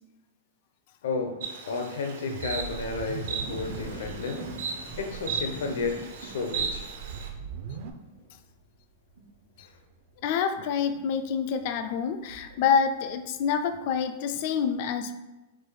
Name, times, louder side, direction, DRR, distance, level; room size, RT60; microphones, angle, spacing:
voice 1, 1.0-6.9 9.6-9.7, left 4 dB, 80° left, 5 dB, 0.8 m, -33 dB
Insect, 1.4-7.3, right 5 dB, 80° right, 0.9 m, -36 dB
sound 1, 2.3-4.1 4.5-4.6 4.9-5.4 5.8-7.9, right 7 dB, 45° right, 0.4 m, -39 dB
sound 2, 3.4-13.1 13.5-14.0, right 2 dB, 65° right, 1.1 m, -45 dB
voice 2, 10.2-15.1, left 7 dB, 40° left, 8 dB, 0.3 m, -27 dB
4.9 x 2.3 x 4.0 m, 1.0 s
supercardioid pair, 175°, 0 cm